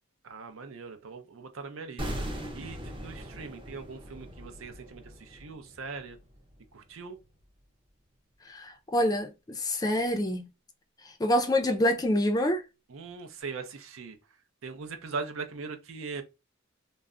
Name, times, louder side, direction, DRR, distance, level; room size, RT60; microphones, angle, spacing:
voice 1, 0.2-2.1 2.5-6.2 6.7-7.2 12.9-14.2 14.6-16.2, right 4 dB, 75° right, 0.5 m, -40 dB
sound 1, 2.0-7.0 7.3-7.4, equal, 25° right, 0.6 m, -40 dB
voice 2, 8.5-10.4 11.2-12.6, left 1 dB, 20° left, 0.4 m, -26 dB
2.2 x 2.0 x 3.6 m
head